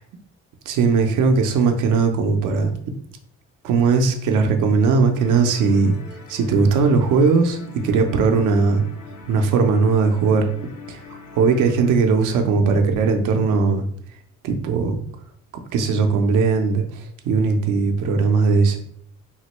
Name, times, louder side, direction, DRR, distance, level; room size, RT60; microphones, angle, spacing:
voice 1, 0.7-2.7 3.6-5.9 6.3-8.8 9.3-10.5 10.9-11.0 11.3-13.8 14.4-15.0 15.7-18.8, right 4 dB, 90° right, 5 dB, 0.6 m, -18 dB
sound 1, 5.1-12.0, left 5 dB, 75° left, 0.7 m, -41 dB
3.6 x 2.1 x 3.0 m, 0.64 s
cardioid pair, 90°, 30 cm